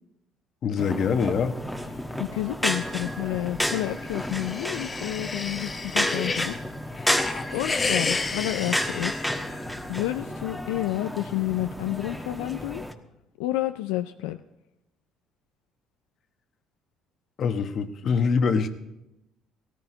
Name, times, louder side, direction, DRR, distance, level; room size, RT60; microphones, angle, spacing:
voice 1, 0.6-1.6 17.4-18.7, left 5 dB, 55° left, 8 dB, 1.1 m, -24 dB
sound 1, 0.8-12.9, left 1 dB, 5° left, 1.3 m, -31 dB
voice 2, 2.2-6.6 6.9-7.1 7.5-9.2 9.9-12.8 13.4-14.4, left 15 dB, 90° left, 8 dB, 0.4 m, -30 dB
sound 2, 3.9-6.6 7.0-9.8, left 4 dB, 30° left, 0.9 m, -31 dB
17.0 x 14.0 x 3.9 m, 0.92 s
supercardioid pair, 75°, 0 cm